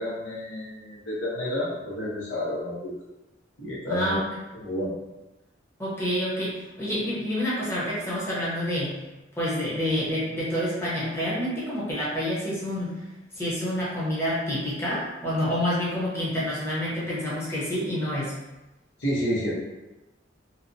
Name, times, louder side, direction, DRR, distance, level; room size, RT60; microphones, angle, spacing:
voice 1, 0.0-2.9 3.6-4.2 4.6-4.9 19.0-19.6, equal, 85° left, -7 dB, 0.9 m, -30 dB
voice 2, 3.9-4.2 5.8-8.9 9.3-12.9 13.3-18.3, equal, 15° left, -9 dB, 0.7 m, -28 dB
2.8 x 2.1 x 2.6 m, 1.0 s
head